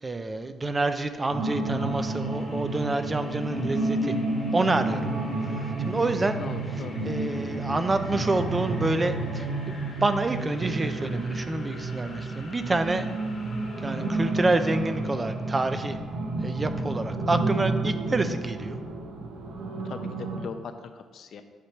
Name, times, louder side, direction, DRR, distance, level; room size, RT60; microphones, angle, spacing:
voice 1, 0.0-4.2 4.5-5.1 5.4-6.4 7.0-9.5 10.0-13.1 13.8-16.0 16.4-18.8, right 2 dB, 25° right, 9 dB, 0.5 m, -27 dB
sound 1, 1.3-20.4, right 2 dB, 65° right, 0.8 m, -31 dB
sound 2, 1.7-19.6, left 1 dB, 45° left, 1.3 m, -43 dB
voice 2, 6.4-7.0 16.8-16.9 19.8-21.4, left 5 dB, 65° left, 8 dB, 0.6 m, -40 dB
8.2 x 3.0 x 5.9 m, 1.5 s
cardioid pair, 90°, 0 cm